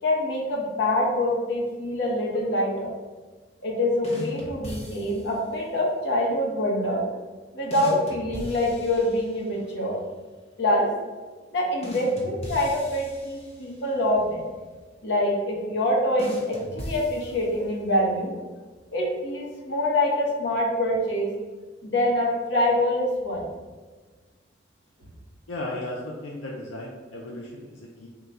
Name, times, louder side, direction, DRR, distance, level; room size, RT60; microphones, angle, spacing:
voice 1, 0.0-2.9 3.6-7.0 7.5-10.0 10.6-10.9 11.5-14.4 15.0-18.3 18.9-21.3 21.8-23.5, left 1 dB, 60° left, -3 dB, 1.0 m, -25 dB
sound 1, 4.0-5.5 7.7-9.7 11.8-14.0 16.2-17.8, equal, 35° left, 0.7 m, -38 dB
voice 2, 25.5-28.1, left 1 dB, 85° left, -1 dB, 0.5 m, -35 dB
3.8 x 2.3 x 4.2 m, 1.4 s
head